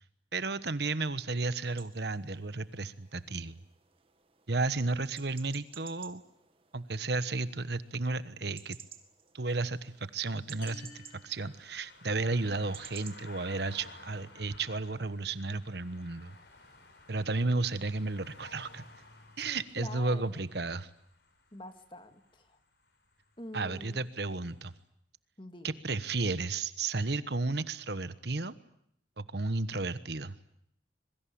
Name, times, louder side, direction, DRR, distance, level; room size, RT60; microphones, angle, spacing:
voice 1, 0.3-3.6 4.5-6.2 6.7-8.8 9.3-16.3 17.1-18.8 19.4-20.9 23.5-24.7 25.6-28.5 29.2-30.4, right 3 dB, 60° right, 14 dB, 1.2 m, -33 dB
sound 1, 1.4-13.9, right 8 dB, 30° right, 2.1 m, -55 dB
sound 2, 9.7-24.3 24.7-24.8, left 3 dB, 55° left, 5.4 m, -56 dB
sound 3, 10.6-12.3, left 4 dB, 85° left, 5.7 m, -54 dB
voice 2, 19.4-20.4 21.5-22.6 23.4-24.1 25.4-25.8, left 1 dB, 25° left, 8 dB, 2.2 m, -47 dB
26.0 x 23.0 x 8.6 m, 0.71 s
head